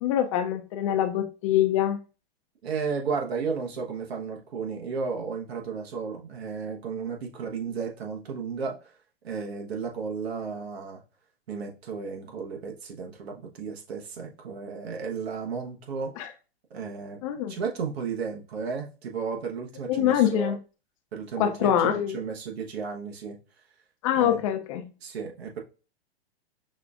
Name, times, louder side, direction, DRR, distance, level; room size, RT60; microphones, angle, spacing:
voice 1, 0.0-2.0 16.2-16.3 17.2-17.6 19.9-20.6 21.4-22.2 24.0-24.9, left 10 dB, 35° left, 0.4 m, -24 dB
voice 2, 2.6-8.9 9.2-11.0 11.5-16.1 16.7-20.5 21.1-23.4 24.1-24.4 25.0-25.6, right 5 dB, 70° right, 1.1 m, -33 dB
6.0 x 2.4 x 2.4 m
hypercardioid pair, 120°, 32 cm